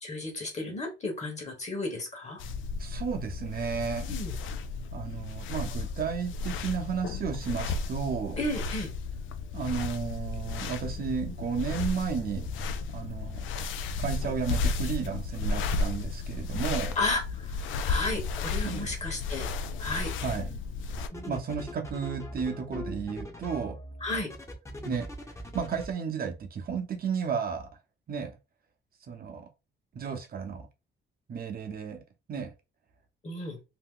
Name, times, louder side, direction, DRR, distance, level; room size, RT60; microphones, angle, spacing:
voice 1, 0.0-2.4 4.1-4.3 8.4-8.9 17.0-17.6 17.8-19.5 19.8-20.1 21.1-21.4 24.0-24.3 33.2-33.6, left 2 dB, 35° left, 1.2 m, -33 dB
sound 1, 2.4-21.1, left 4 dB, 80° left, 0.4 m, -33 dB
voice 2, 2.8-4.2 4.9-8.4 9.5-12.5 12.9-13.4 14.0-16.9 18.6-18.9 20.2-20.5 21.3-23.8 24.8-25.1 25.5-27.7 28.1-28.4 29.1-29.5 29.9-30.7 31.3-32.0 32.3-32.5, right 6 dB, 50° right, 0.9 m, -33 dB
sound 2, 20.2-20.6 21.0-25.9, left 1 dB, 15° left, 0.8 m, -41 dB
2.8 x 2.1 x 3.7 m
cardioid pair, 90°, 20 cm